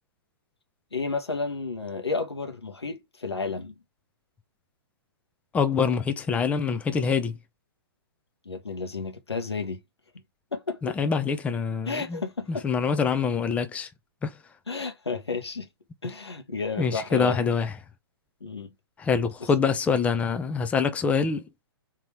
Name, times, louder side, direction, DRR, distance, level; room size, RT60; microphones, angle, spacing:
voice 1, 0.9-3.7 8.4-9.8 10.5-10.9 11.9-12.6 14.7-15.7 16.0-17.4 18.4-18.7, left 4 dB, 85° left, 1.2 m, -32 dB
voice 2, 5.5-7.4 10.8-12.2 12.5-13.9 14.2-14.4 16.8-17.7 19.0-21.4, left 6 dB, 10° left, 0.5 m, -25 dB
3.8 x 2.9 x 4.5 m
figure-of-eight pair, 120°, 13 cm